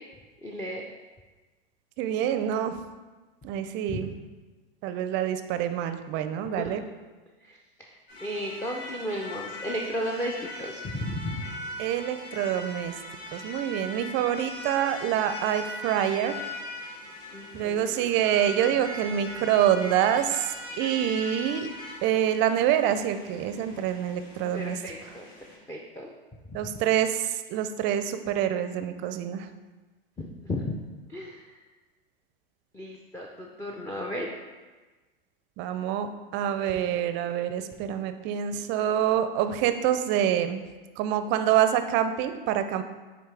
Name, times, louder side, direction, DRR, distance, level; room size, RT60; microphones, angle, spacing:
voice 1, 0.4-0.8 3.9-4.1 6.6-6.7 7.4-7.6 8.2-11.5 17.3-18.1 24.5-25.3 25.7-26.1 26.6-26.7 30.2-30.8 31.1-31.5 32.7-34.3, equal, 10° left, -1 dB, 0.5 m, -34 dB
voice 2, 2.0-2.8 3.4-4.1 4.8-6.8 11.8-12.9 13.3-16.4 17.5-21.7 22.0-24.8 26.5-29.5 35.6-40.6 41.0-42.8, right 10 dB, 40° right, 10 dB, 0.5 m, -26 dB
sound 1, 8.1-25.6, left 1 dB, 45° left, 1.9 m, -40 dB
8.9 x 3.1 x 3.4 m, 1.3 s
hypercardioid pair, 100°, 29 cm